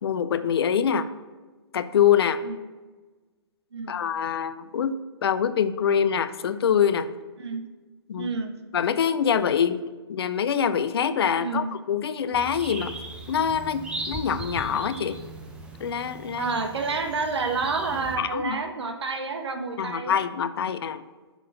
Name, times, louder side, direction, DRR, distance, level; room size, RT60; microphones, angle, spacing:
voice 1, 0.0-1.1 1.7-2.4 3.9-5.0 5.2-7.1 8.1-8.3 8.7-9.8 10.1-12.9 13.3-15.1 15.8-16.5 18.2-18.6 19.8-21.0, left 8 dB, 65° left, 13 dB, 0.5 m, -24 dB
voice 2, 8.2-8.5 11.3-11.7 14.7-14.9 16.4-20.2, right 4 dB, 75° right, 5 dB, 1.2 m, -29 dB
sound 1, 12.3-18.2, right 2 dB, 5° right, 0.7 m, -38 dB
6.0 x 5.5 x 5.4 m, 1.3 s
hypercardioid pair, 135°, 14 cm